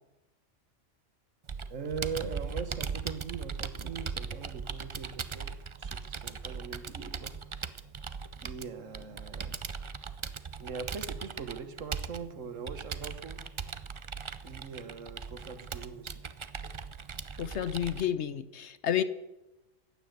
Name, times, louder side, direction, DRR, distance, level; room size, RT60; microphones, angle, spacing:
Computer keyboard, 1.5-18.0, right 5 dB, 40° right, 0.4 m, -39 dB
voice 1, 1.7-7.3 8.4-9.6 10.6-13.4 14.4-16.2, right 5 dB, 85° right, 9 dB, 1.7 m, -41 dB
voice 2, 17.4-19.0, left 10 dB, 65° left, 14 dB, 1.1 m, -30 dB
15.0 x 10.0 x 8.0 m, 0.99 s
omnidirectional pair, 1.3 m